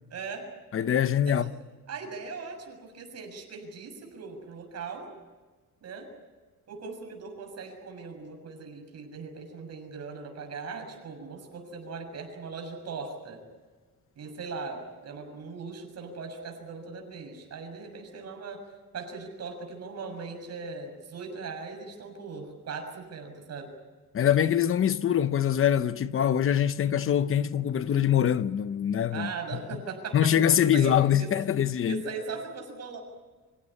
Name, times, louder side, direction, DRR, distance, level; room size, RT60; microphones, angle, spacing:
voice 1, 0.1-0.5 1.3-1.5 1.9-5.1 5.8-6.1 6.7-13.4 14.1-18.6 18.9-23.7 29.1-31.3 31.9-33.0, right 4 dB, 50° right, 6.7 m, -39 dB
voice 2, 0.7-1.5 24.1-29.3 30.1-32.0, left 9 dB, 40° left, 0.8 m, -24 dB
26.5 x 16.0 x 9.9 m
cardioid pair, 160°, 33 cm